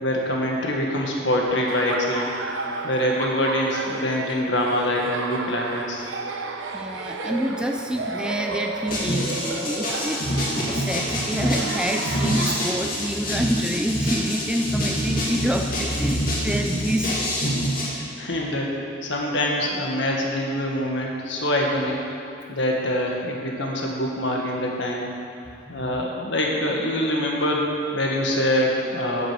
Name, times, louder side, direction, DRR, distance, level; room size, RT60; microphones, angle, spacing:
voice 1, 0.0-2.3 2.8-6.1 17.9-18.7 19.0-22.0 22.5-25.1 25.7-29.3, left 1 dB, 65° left, -1 dB, 1.7 m, -24 dB
Laughter, 1.7-12.6, right 3 dB, 70° right, 0.9 m, -32 dB
voice 2, 6.7-17.3 25.7-25.9, equal, 5° right, 4 dB, 0.3 m, -27 dB
sound 1, 8.9-17.9, equal, 45° left, 2.5 m, -26 dB
9.3 x 7.6 x 7.5 m, 2.7 s
head